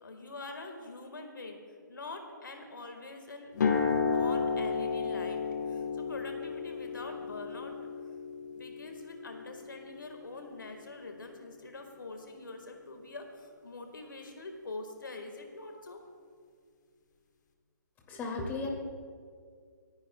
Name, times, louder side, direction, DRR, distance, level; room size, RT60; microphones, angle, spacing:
voice 1, 0.0-1.6 1.9-3.5 4.1-7.8 8.5-16.0, left 3 dB, 85° left, 4 dB, 1.6 m, -45 dB
sound 1, 3.5-11.6, left 5 dB, 65° left, 1.4 m, -33 dB
voice 2, 18.1-18.7, left 3 dB, 15° left, -1 dB, 2.1 m, -35 dB
28.0 x 10.5 x 2.2 m, 2.1 s
hypercardioid pair, 140°, 10 cm